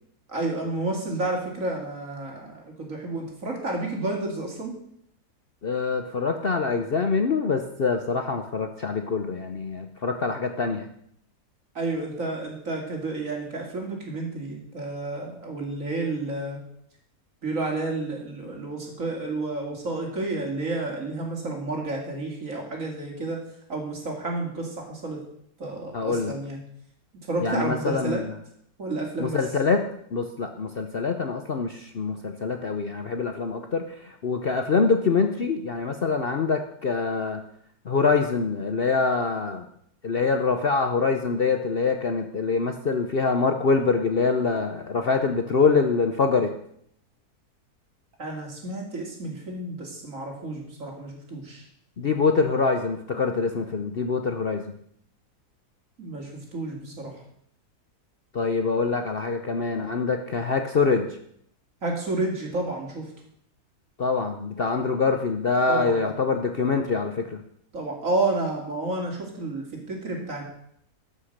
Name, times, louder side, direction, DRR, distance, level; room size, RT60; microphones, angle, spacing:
voice 1, 0.3-4.7 11.7-16.6 17.4-23.4 23.7-25.2 25.6-26.6 27.3-28.2 28.8-29.4 48.2-51.6 56.0-57.1 61.8-63.1 65.7-66.0 67.7-70.4, right 2 dB, 55° right, 0 dB, 3.1 m, -30 dB
voice 2, 5.6-10.9 25.9-26.3 27.4-28.4 29.2-29.8 30.1-37.4 37.8-39.7 40.0-46.5 52.0-54.7 58.3-61.2 64.0-67.4, left 4 dB, 45° left, 6 dB, 0.8 m, -25 dB
13.5 x 6.2 x 6.6 m, 0.69 s
omnidirectional pair, 1.6 m